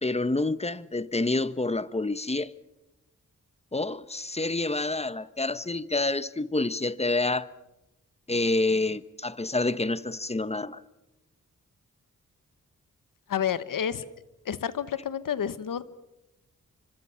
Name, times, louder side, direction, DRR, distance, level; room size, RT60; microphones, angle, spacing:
voice 1, 0.0-2.5 3.7-7.5 8.3-10.8, left 2 dB, 20° left, 1.1 m, -28 dB
voice 2, 13.3-14.0 14.4-15.8, left 8 dB, 85° left, 1.2 m, -29 dB
28.5 x 25.5 x 5.8 m
cardioid pair, 55°, 32 cm